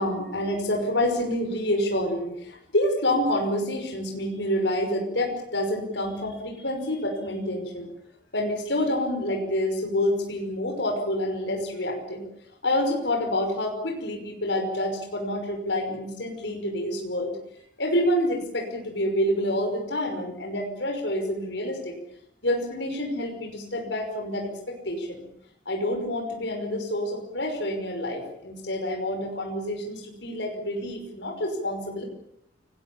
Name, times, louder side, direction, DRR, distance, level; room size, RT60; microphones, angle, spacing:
voice 1, 0.0-7.9 8.3-12.2 12.6-17.4 17.8-21.9 22.4-25.2 25.7-32.0, left 1 dB, 75° left, 2 dB, 5.7 m, -28 dB
29.5 x 20.5 x 7.3 m, 0.76 s
head